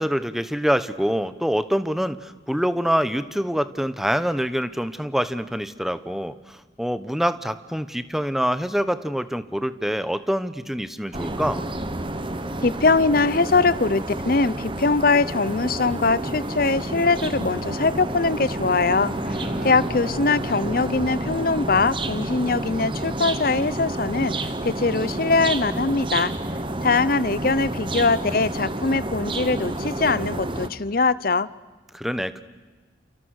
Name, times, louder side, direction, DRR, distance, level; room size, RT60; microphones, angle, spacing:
voice 1, 0.0-11.6 19.3-19.9 31.9-32.4, equal, ahead, 13 dB, 1.0 m, -25 dB
sound 1, 11.1-30.7, right 1 dB, 25° right, 1.4 m, -30 dB
voice 2, 12.6-19.1 19.6-24.3 24.6-26.3 26.8-31.5, left 3 dB, 50° left, 17 dB, 0.8 m, -22 dB
Bowed string instrument, 18.5-22.1, left 1 dB, 85° left, 6.2 m, -38 dB
30.0 x 28.5 x 6.5 m, 1.3 s
head